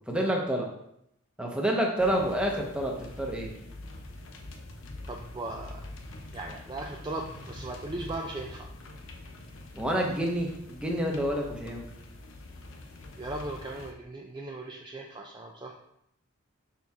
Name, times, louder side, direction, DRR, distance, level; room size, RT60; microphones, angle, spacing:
voice 1, 0.1-0.7 1.4-3.5 9.7-11.8, right 1 dB, 5° right, -1 dB, 0.8 m, -28 dB
sound 1, 2.0-13.9, left 2 dB, 70° left, 0.8 m, -45 dB
voice 2, 5.1-5.8 6.3-8.7 13.2-15.7, right 2 dB, 20° right, 0 dB, 0.4 m, -38 dB
6.1 x 4.4 x 3.5 m, 0.77 s
head